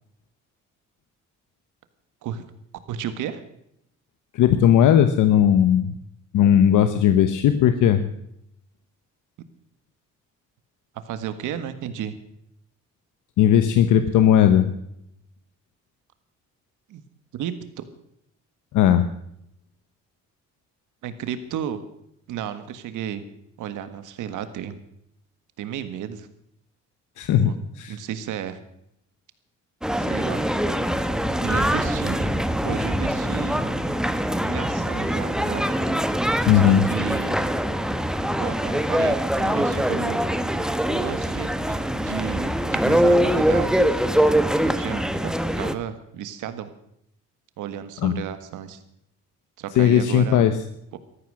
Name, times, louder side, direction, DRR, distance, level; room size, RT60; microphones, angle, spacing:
voice 1, 2.9-3.4 11.1-12.1 16.9-17.0 17.3-17.9 21.0-21.8 22.3-23.2 23.6-24.8 25.6-26.3 27.4-27.5 27.9-28.6 30.0-30.4 31.4-32.3 32.6-33.7 34.5-35.6 36.5-37.5 38.4-40.2 40.9-43.8 44.6-46.7 47.6-48.8 49.6-50.5 50.9-51.0, right 9 dB, 85° right, 10 dB, 1.6 m, -33 dB
voice 2, 4.3-5.9 6.3-8.1 13.4-14.7 18.7-19.1 27.2-28.0 36.5-36.8 48.0-48.2 49.8-50.6, left 10 dB, 80° left, 9 dB, 1.0 m, -17 dB
sound 1, 29.8-45.8, equal, ahead, 1.0 m, -23 dB
14.5 x 13.5 x 6.4 m, 0.74 s
cardioid pair, 90°, 30 cm